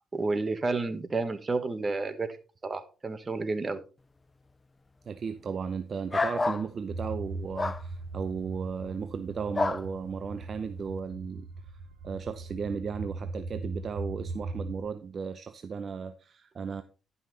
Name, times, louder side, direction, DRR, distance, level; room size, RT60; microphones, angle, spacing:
voice 1, 0.1-2.4 2.6-3.8, right 3 dB, 30° right, 1.3 m, -30 dB
voice 2, 5.1-11.5 12.0-16.8, right 6 dB, 45° right, 0.7 m, -35 dB
sound 1, 6.1-6.7 7.6-7.8 9.5-9.8, left 3 dB, 25° left, 0.4 m, -28 dB
sound 2, 6.9-14.8, right 3 dB, 80° right, 2.1 m, -39 dB
11.5 x 5.7 x 4.1 m
cardioid pair, 90°, 0 cm